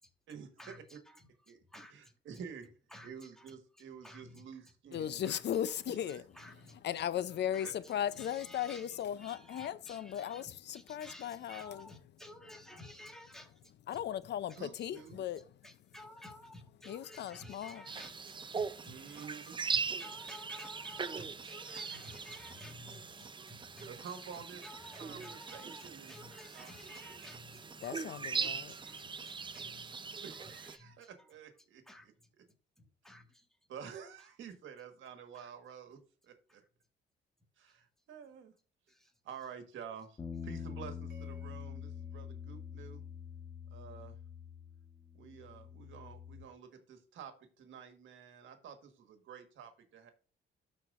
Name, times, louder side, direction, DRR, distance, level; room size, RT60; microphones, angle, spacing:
voice 1, 0.6-1.3 1.7-2.1 2.9-3.5 4.0-4.5 5.2-5.4 6.3-6.8 7.5-8.9 9.2-13.6 13.9-14.6 15.0-15.1 15.6-19.5 20.0-24.0 24.6-27.6 28.4-29.9 30.7-31.3 31.9-32.1 32.8-33.5 35.3-35.5 38.9-39.1, left 1 dB, ahead, 1.6 m, -54 dB
voice 2, 1.9-2.7 3.0-5.2 5.9-6.2 7.6-7.7 14.6-15.2 18.8-19.6 20.6-20.7 21.1-21.2 21.7-21.8 23.9-24.6 25.0-26.1 26.5-26.7 30.2-32.4 33.7-36.6 37.6-38.5 39.2-43.0 43.7-44.2 45.2-50.1, right 7 dB, 75° right, 1.5 m, -50 dB
voice 3, 4.9-6.2 6.8-11.9 13.9-15.4 16.8-17.8 27.8-28.8, left 10 dB, 60° left, 0.5 m, -37 dB
sound 1, 17.9-30.8, right 5 dB, 25° right, 0.5 m, -41 dB
sound 2, 40.2-46.4, left 7 dB, 20° left, 1.3 m, -45 dB
sound 3, 41.1-43.5, equal, 55° right, 2.0 m, -63 dB
13.0 x 4.5 x 2.5 m
cardioid pair, 90°, 20 cm